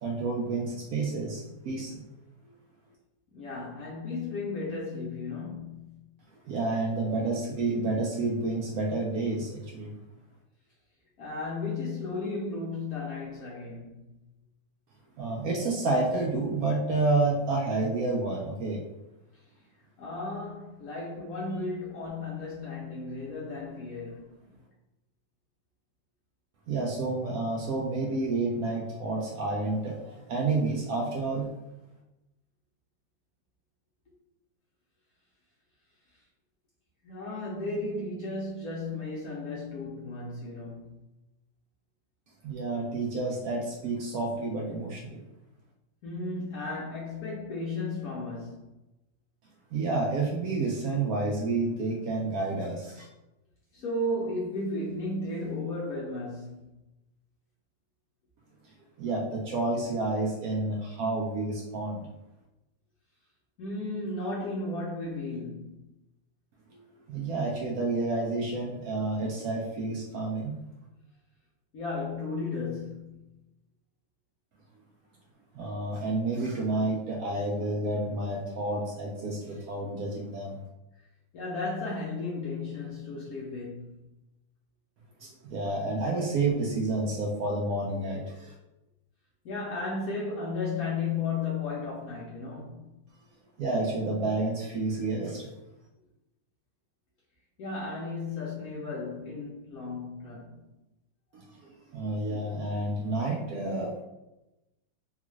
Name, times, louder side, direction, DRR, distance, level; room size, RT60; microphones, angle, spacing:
voice 1, 0.0-2.0 2.5-2.6 6.5-9.9 15.2-18.8 26.7-31.5 42.4-45.2 49.7-53.1 58.6-62.1 66.7-70.6 75.5-80.6 85.2-88.5 93.6-95.5 101.3-104.0, right 2 dB, 80° right, 0.7 m, -30 dB
voice 2, 3.3-6.1 11.2-14.1 20.0-24.5 37.0-41.0 46.0-48.7 53.7-56.7 63.6-65.8 71.7-73.4 81.3-84.0 89.4-92.9 97.6-100.6, left 3 dB, 65° left, 0.9 m, -34 dB
3.5 x 2.4 x 3.0 m
omnidirectional pair, 2.0 m